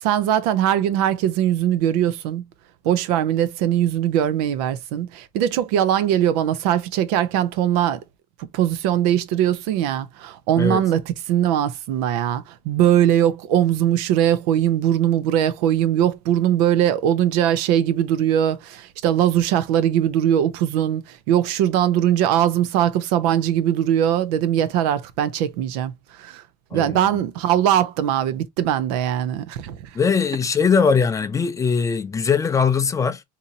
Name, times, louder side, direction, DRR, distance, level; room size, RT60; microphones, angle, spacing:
voice 1, 0.0-2.4 2.8-8.0 8.5-26.4 26.7-29.8, right 11 dB, 80° right, 0.6 m, -21 dB
voice 2, 29.9-33.2, left 5 dB, 15° left, 0.4 m, -20 dB
3.8 x 2.8 x 2.7 m
cardioid pair, 140°, 20 cm